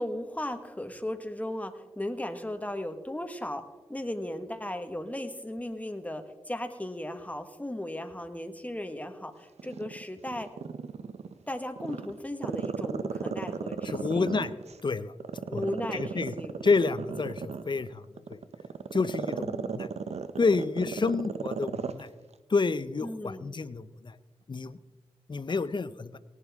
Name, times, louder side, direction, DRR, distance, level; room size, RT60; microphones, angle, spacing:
voice 1, 0.0-3.6 3.9-10.5 11.5-14.3 15.5-16.6 19.3-19.7 20.8-21.2 23.0-23.5, left 1 dB, 15° left, 7 dB, 1.5 m, -36 dB
Growling, 9.6-11.3 11.8-14.8 15.2-22.0 22.3-22.4, right 6 dB, 80° right, 0.7 m, -35 dB
voice 2, 13.8-14.5 14.8-15.1 15.5-15.6 15.9-16.3 16.6-18.0 18.3-18.4 18.9-19.9 20.4-22.1 22.5-24.2 24.5-24.8 25.3-26.2, left 4 dB, 45° left, 14 dB, 0.6 m, -29 dB
18.5 x 11.0 x 3.6 m, 1.1 s
cardioid pair, 55°, 11 cm